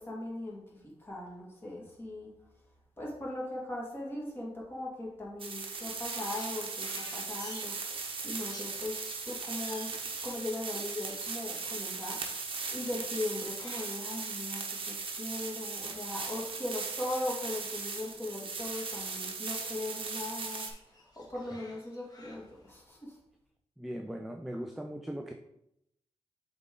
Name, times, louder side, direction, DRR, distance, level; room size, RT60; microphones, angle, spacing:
voice 1, 0.0-2.3 3.0-10.0 10.2-12.2 12.7-23.2, left 1 dB, 20° left, -3 dB, 2.0 m, -39 dB
sound 1, 5.4-20.7, right 4 dB, 50° right, 1.0 m, -38 dB
Crow, 5.7-16.4 16.7-19.7 20.0-22.7, left 1 dB, 35° left, 1.4 m, -55 dB
voice 2, 23.8-25.3, equal, ahead, 3 dB, 0.4 m, -39 dB
7.6 x 3.8 x 3.7 m, 0.79 s
wide cardioid pair, 110°, 11 cm